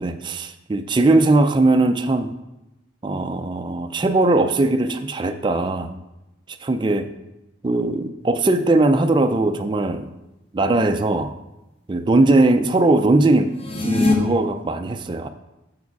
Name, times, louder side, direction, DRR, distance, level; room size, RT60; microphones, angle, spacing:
voice 1, 0.0-2.3 3.0-5.9 6.6-7.1 7.6-10.1 10.5-11.3 11.9-15.3, right 2 dB, 20° right, 7 dB, 0.3 m, -19 dB
sound 1, 13.5-14.1, left 2 dB, 30° left, 0.7 m, -20 dB
6.6 x 4.8 x 4.6 m, 0.95 s
head